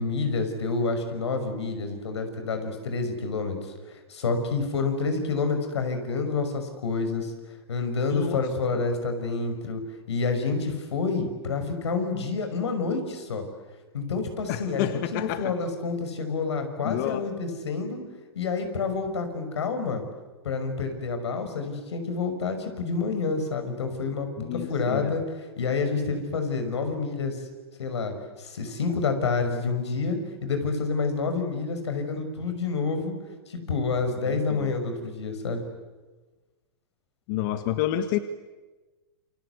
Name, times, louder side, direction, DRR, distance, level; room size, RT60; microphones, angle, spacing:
voice 1, 0.0-7.3 7.7-9.8 10.1-13.4 13.9-18.0 18.3-20.0 20.4-25.2 25.6-27.5 27.8-33.2 33.5-35.6, left 4 dB, 90° left, 7 dB, 5.9 m, -28 dB
voice 2, 8.1-8.4 8.7-8.8 14.5-15.5 16.8-17.2 24.4-25.1 34.2-34.7 37.3-38.2, left 12 dB, 50° left, 10 dB, 1.6 m, -29 dB
28.5 x 25.0 x 8.2 m, 1.2 s
hypercardioid pair, 135°, 14 cm